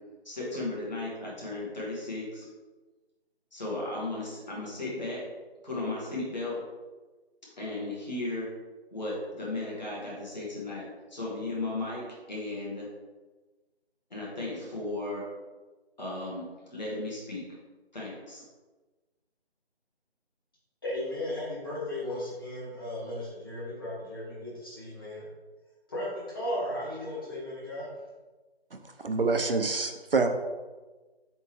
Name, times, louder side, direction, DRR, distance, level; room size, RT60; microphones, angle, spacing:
voice 1, 0.2-2.4 3.5-5.2 5.6-6.5 7.6-8.5 8.9-12.9 14.1-15.2 16.0-17.4 17.9-18.4, left 2 dB, 45° left, -5 dB, 1.5 m, -35 dB
voice 2, 20.8-25.3 25.9-27.9, left 1 dB, 20° left, -10 dB, 1.3 m, -35 dB
voice 3, 29.0-30.3, right 4 dB, 60° right, 5 dB, 0.4 m, -26 dB
4.3 x 3.5 x 3.0 m, 1.2 s
figure-of-eight pair, 160°, 32 cm